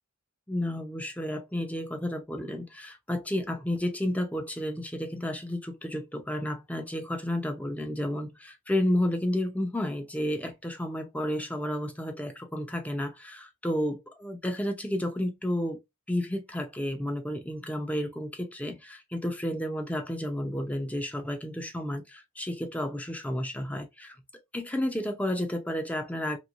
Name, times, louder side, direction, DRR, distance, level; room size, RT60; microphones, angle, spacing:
voice 1, 0.5-15.8 16.1-24.2 24.5-26.4, left 1 dB, 5° left, 0.5 m, -31 dB
3.1 x 3.0 x 2.4 m
head